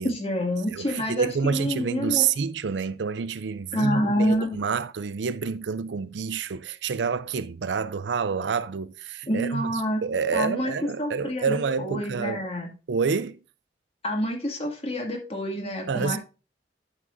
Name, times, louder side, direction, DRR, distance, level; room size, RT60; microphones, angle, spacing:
voice 1, 0.0-2.3 3.7-4.5 9.3-10.0 10.3-10.7 11.0-12.7 14.0-16.2, equal, 35° left, 2.1 m, -27 dB
voice 2, 0.7-12.5 12.9-13.4 15.9-16.2, right 6 dB, 85° right, 0.5 m, -28 dB
12.5 x 6.0 x 2.6 m
head